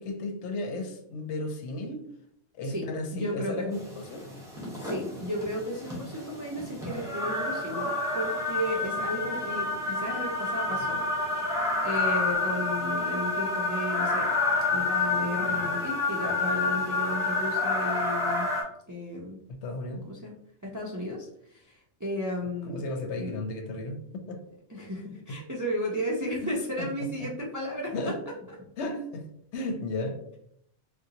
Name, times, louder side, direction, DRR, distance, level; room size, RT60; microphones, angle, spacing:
voice 1, 0.0-2.0 2.5-3.7 4.1-4.3 19.6-20.0 22.7-24.0 24.3-24.4 25.3-25.4 26.4-26.5 26.8-26.9 27.2-27.3 27.9-28.2 28.8-29.3 29.5-30.2, left 2 dB, 75° left, 0.9 m, -34 dB
voice 2, 3.1-3.7 4.7-11.0 11.5-14.3 14.7-18.5 18.9-19.4 20.0-20.3 20.7-22.9 23.2-23.3 24.7-28.1, equal, 30° right, 0.3 m, -34 dB
sound 1, 3.7-18.6, left 3 dB, 5° right, 1.0 m, -29 dB
3.8 x 2.2 x 2.7 m
omnidirectional pair, 1.2 m